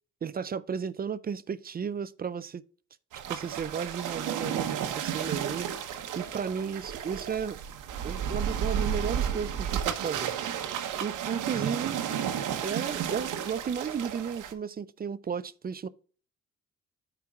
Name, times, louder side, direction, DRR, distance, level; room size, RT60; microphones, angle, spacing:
voice 1, 0.2-2.6 3.3-7.6 8.0-10.4 11.0-12.0 12.6-15.9, right 7 dB, 30° right, 0.4 m, -34 dB
sound 1, 3.1-14.5, right 9 dB, 85° right, 1.0 m, -32 dB
9.4 x 4.6 x 3.6 m
cardioid pair, 90°, 30 cm